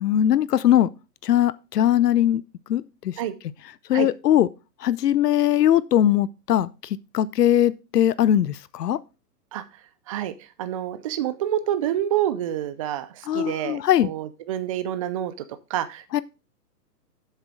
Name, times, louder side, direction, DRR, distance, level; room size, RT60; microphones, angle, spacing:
voice 1, 0.0-0.9 1.2-2.4 2.7-3.1 3.9-4.5 4.8-6.7 7.1-9.0 13.3-14.1 16.1-16.2, left 11 dB, 75° left, 0.8 m, -20 dB
voice 2, 10.6-15.3 15.7-16.2, right 11 dB, 25° right, 0.4 m, -27 dB
7.9 x 6.7 x 4.6 m
hypercardioid pair, 135°, 48 cm